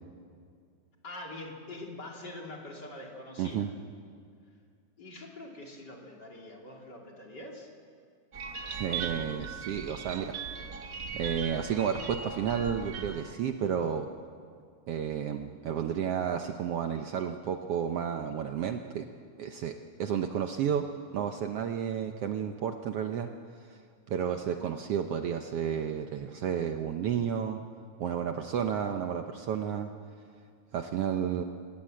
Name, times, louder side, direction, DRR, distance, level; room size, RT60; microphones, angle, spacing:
voice 1, 1.0-3.7 5.0-7.7, left 2 dB, 35° left, 0 dB, 3.1 m, -44 dB
voice 2, 3.4-3.7 8.7-10.4 11.1-14.1 14.9-19.0 19.4-20.8 21.1-23.3 23.6-23.8 24.1-27.6 28.0-29.9 30.7-31.4, right 8 dB, 65° right, 6 dB, 1.6 m, -31 dB
sound 1, 8.3-13.3, right 6 dB, 50° right, 1.0 m, -39 dB
29.5 x 17.5 x 7.7 m, 2.3 s
omnidirectional pair, 3.3 m